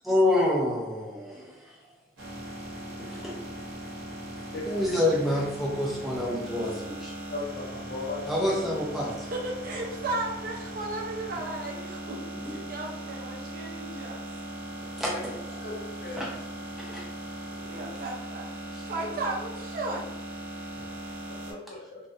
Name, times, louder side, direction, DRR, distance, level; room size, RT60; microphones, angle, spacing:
voice 1, 0.0-1.5 3.0-3.3 4.7-7.1 8.3-9.3 12.4-12.5 15.0-15.3 16.2-16.3 16.8-17.0, left 1 dB, ahead, -5 dB, 0.5 m, -27 dB
sound 1, 2.2-21.5, right 1 dB, 80° right, 0.7 m, -39 dB
voice 2, 7.3-8.3 15.6-16.2 21.4-22.0, left 3 dB, 55° left, -2 dB, 0.6 m, -37 dB
voice 3, 9.3-12.2 12.5-14.2 16.1-16.2 16.9-17.0 17.5-18.6 18.9-20.0, right 2 dB, 45° right, -2 dB, 0.5 m, -35 dB
2.4 x 2.1 x 2.5 m, 0.89 s
head